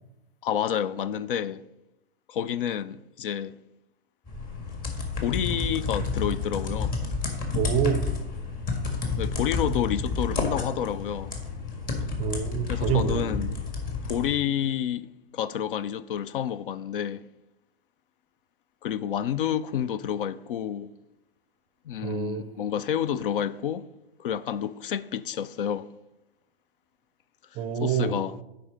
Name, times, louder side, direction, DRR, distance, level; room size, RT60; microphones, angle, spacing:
voice 1, 0.4-1.6 2.3-3.6 5.2-6.9 9.2-11.3 12.7-13.6 14.0-15.1 15.3-17.2 18.8-20.9 21.9-23.9 24.2-25.9 27.8-28.3, left 9 dB, 60° left, 0.4 m, -29 dB
sound 1, 4.3-14.3, left 4 dB, 25° left, 1.7 m, -30 dB
voice 2, 7.5-8.1 12.2-13.2 22.0-22.4 27.6-28.2, right 8 dB, 20° right, 0.5 m, -27 dB
8.5 x 5.2 x 5.0 m
hypercardioid pair, 120°, 32 cm